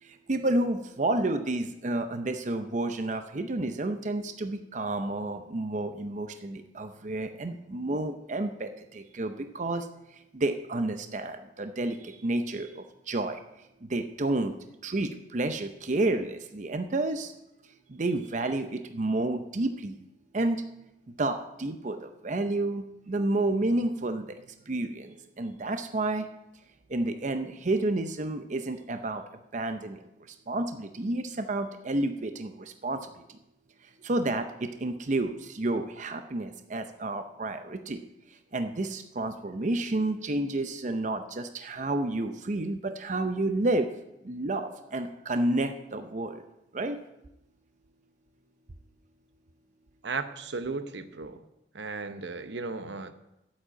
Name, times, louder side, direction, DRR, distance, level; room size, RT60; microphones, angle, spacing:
voice 1, 0.0-14.5 14.8-17.3 17.7-20.0 20.3-20.7 21.1-24.4 24.7-26.3 26.9-29.2 29.5-33.4 33.8-38.0 38.3-43.9 44.2-46.4 46.7-47.0, right 2 dB, 40° right, 8 dB, 0.6 m, -30 dB
voice 2, 50.0-51.4 51.7-53.1, right 4 dB, 75° right, 10 dB, 0.9 m, -35 dB
8.4 x 7.7 x 9.0 m, 0.88 s
head